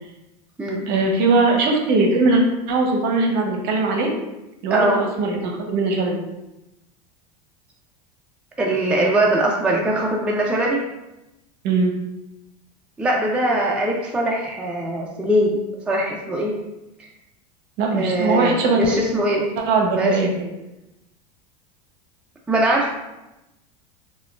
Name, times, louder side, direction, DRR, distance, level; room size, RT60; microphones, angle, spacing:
voice 1, 0.9-2.4 2.7-4.1 4.6-6.2 11.6-11.9 17.8-18.8 19.7-20.3, right 3 dB, 55° right, 2 dB, 0.7 m, -20 dB
voice 2, 4.7-5.0 8.6-10.8 13.0-15.6 15.9-16.5 17.9-19.5 20.0-20.2 22.5-22.9, right 1 dB, 5° right, -1 dB, 0.3 m, -21 dB
3.4 x 2.2 x 2.3 m, 0.95 s
supercardioid pair, 105°, 21 cm